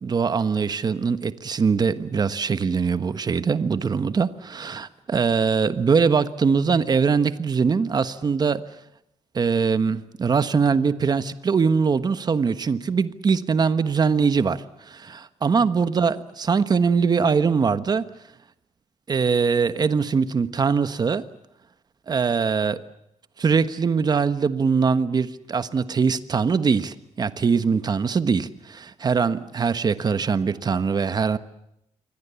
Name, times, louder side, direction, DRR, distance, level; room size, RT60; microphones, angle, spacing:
voice 1, 0.0-8.6 9.3-18.1 19.1-21.2 22.1-22.8 23.4-31.4, right 5 dB, 35° right, 13 dB, 1.3 m, -22 dB
28.0 x 24.0 x 7.1 m, 0.80 s
wide cardioid pair, 150°, 12 cm